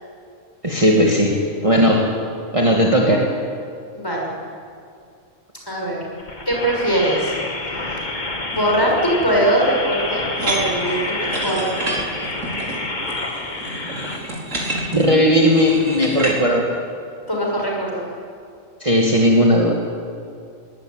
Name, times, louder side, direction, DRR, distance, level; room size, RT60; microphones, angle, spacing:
voice 1, 0.6-2.1 2.5-3.3 14.9-16.7 18.8-19.7, equal, 25° right, -1 dB, 2.2 m, -16 dB
voice 2, 3.9-4.3 5.7-6.0 6.5-7.3 7.8-8.1 8.5-11.9 17.3-18.0, right 1 dB, 15° left, -2 dB, 6.5 m, -21 dB
sound 1, 6.2-14.2, left 2 dB, 35° left, 2.2 m, -28 dB
sound 2, 10.4-16.4, right 1 dB, 75° right, 4.8 m, -28 dB
23.0 x 18.5 x 9.2 m, 2.4 s
omnidirectional pair, 1.3 m